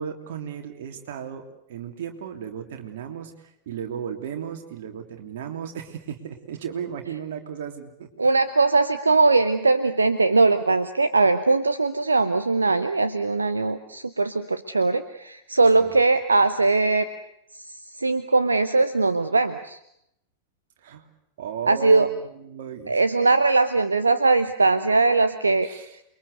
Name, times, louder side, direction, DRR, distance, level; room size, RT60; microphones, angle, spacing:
voice 1, 0.0-1.4 1.7-8.1 15.7-16.0 20.8-21.1 21.4-23.0 25.6-26.0, right 8 dB, 55° right, 4 dB, 3.2 m, -35 dB
voice 2, 8.2-17.1 17.5-19.8 21.7-22.1 22.9-25.7, right 3 dB, 80° right, 11 dB, 0.9 m, -20 dB
28.5 x 22.5 x 6.8 m, 0.77 s
figure-of-eight pair, 90°, 0 cm